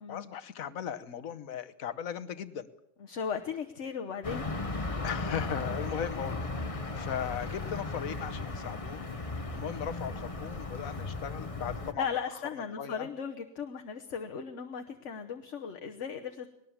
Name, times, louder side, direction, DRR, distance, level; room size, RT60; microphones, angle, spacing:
voice 1, 0.1-2.7 5.0-9.1 9.5-12.2 12.8-13.1, left 8 dB, 85° left, 11 dB, 1.4 m, -38 dB
voice 2, 3.0-4.5 6.6-6.8 12.0-16.5, left 6 dB, 60° left, 4 dB, 1.4 m, -37 dB
sound 1, 4.2-11.9, left 3 dB, 25° left, 1.3 m, -36 dB
20.0 x 19.0 x 7.3 m, 0.85 s
omnidirectional pair, 1.4 m